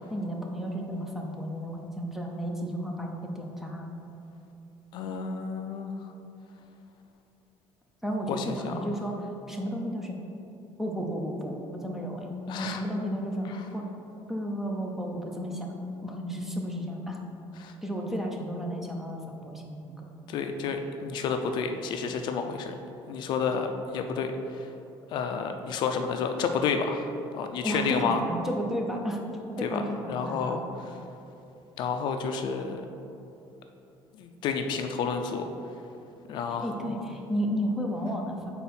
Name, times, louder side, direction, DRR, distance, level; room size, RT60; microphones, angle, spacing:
voice 1, 0.1-3.9 8.0-10.2 10.8-13.9 14.3-15.7 16.0-17.2 17.8-20.1 27.6-29.2 29.5-30.6 36.6-38.5, equal, 5° right, 0 dB, 0.5 m, -33 dB
voice 2, 4.9-5.9 8.3-8.9 12.5-12.8 17.6-17.7 20.3-22.7 23.1-24.7 25.1-27.1 27.3-28.2 29.6-29.8 30.1-30.9 31.8-32.9 34.2-35.5 36.3-37.0, left 5 dB, 55° left, 6 dB, 0.4 m, -30 dB
4.3 x 4.1 x 5.5 m, 2.8 s
cardioid pair, 165°, 9 cm